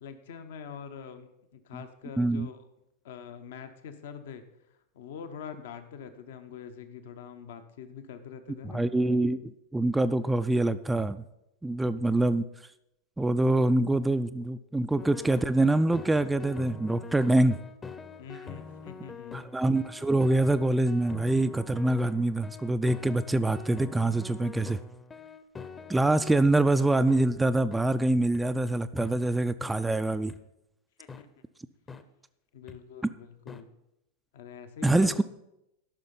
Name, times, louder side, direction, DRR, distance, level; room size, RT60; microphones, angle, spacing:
voice 1, 0.0-2.7 3.0-4.4 4.9-8.9 18.2-19.4 31.0-31.3 32.5-33.7 34.3-35.2, left 7 dB, 60° left, 9 dB, 0.9 m, -44 dB
voice 2, 2.2-2.5 8.7-11.2 11.6-12.4 13.2-17.6 19.3-24.8 25.9-30.3 34.8-35.2, right 2 dB, 10° right, 11 dB, 0.4 m, -25 dB
sound 1, 15.0-26.5 27.1-27.2 27.7-27.8 28.3-28.4 29.0-29.1 29.6-29.7 30.3-30.4 31.1-31.2 31.9-32.0 32.7-32.8 33.5-33.6, left 5 dB, 20° left, 0.7 m, -44 dB
13.5 x 5.7 x 5.5 m, 0.86 s
figure-of-eight pair, 90°, 0 cm